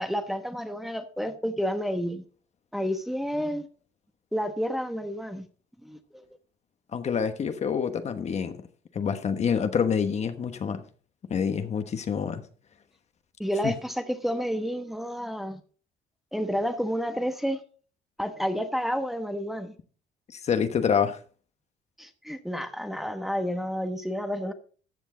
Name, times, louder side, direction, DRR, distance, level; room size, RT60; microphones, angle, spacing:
voice 1, 0.0-2.2 2.7-3.7 4.3-5.5 5.8-6.0 13.4-15.6 16.3-17.6 18.2-19.7 22.0-24.5, equal, ahead, 1.1 m, -30 dB
voice 2, 6.9-8.6 8.9-10.8 11.3-12.4 13.6-13.7 20.3-21.2, left 7 dB, 40° left, 1.2 m, -27 dB
14.0 x 8.2 x 3.9 m
cardioid pair, 110°, 17 cm